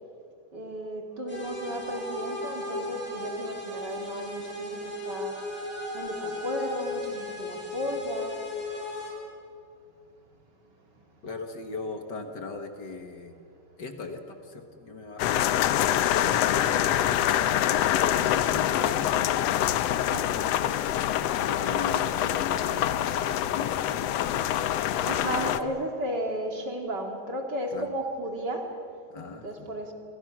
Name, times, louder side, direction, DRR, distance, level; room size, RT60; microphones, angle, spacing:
voice 1, 0.5-5.4 5.9-8.4 20.1-20.6 25.0-28.7 29.4-29.9, equal, 35° right, 3 dB, 2.6 m, -34 dB
sound 1, 1.3-9.1, left 2 dB, 5° left, 6.9 m, -36 dB
voice 2, 11.2-13.4 13.8-15.4 16.0-17.0 17.6-19.4 20.9-23.3 23.5-24.1 25.4-25.7 27.7-27.9 29.1-29.7, left 3 dB, 45° left, 6 dB, 1.6 m, -39 dB
sound 2, 15.2-25.6, left 11 dB, 80° left, 1.5 m, -25 dB
29.0 x 25.5 x 6.2 m, 2.5 s
omnidirectional pair, 3.8 m